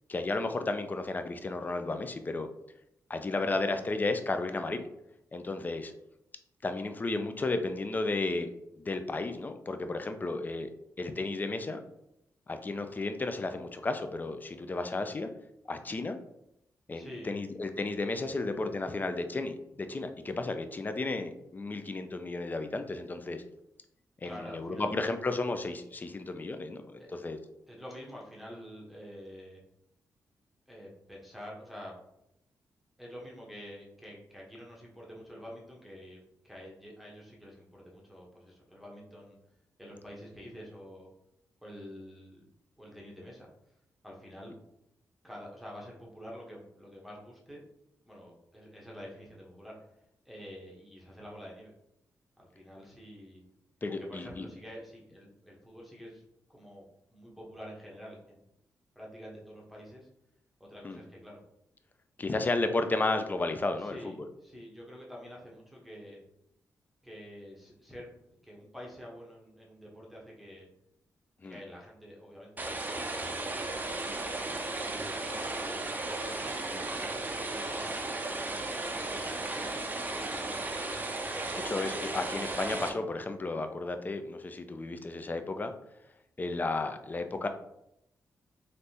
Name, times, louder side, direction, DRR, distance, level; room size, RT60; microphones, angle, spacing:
voice 1, 0.1-2.5 3.1-4.9 5.3-5.9 6.6-8.5 8.8-10.7 11.0-11.8 12.5-15.3 15.7-16.2 16.9-23.4 24.2-27.4 53.8-54.5 60.8-61.0 62.2-64.3 71.4-71.6 76.7-76.9 81.6-85.7 86.4-87.5, left 2 dB, 30° left, 8 dB, 0.4 m, -33 dB
voice 2, 16.9-17.4 18.3-19.5 24.2-25.0 27.0-27.1 27.7-29.6 30.7-31.9 33.0-39.4 39.8-41.1 41.6-42.4 42.8-43.5 44.0-44.5 45.2-47.6 48.1-49.7 50.2-51.7 52.4-53.4 53.9-56.2 56.5-58.4 58.9-60.1 60.6-61.4 62.3-62.6 63.8-66.2 67.0-68.1 68.4-70.7 71.4-72.7 73.0-73.8 74.3-76.4 77.0-78.1 78.8-81.5, equal, ahead, -3 dB, 0.9 m, -48 dB
sound 1, 72.6-82.9, right 2 dB, 25° right, 0.5 m, -35 dB
3.4 x 2.6 x 2.8 m, 0.80 s
cardioid pair, 70°, 6 cm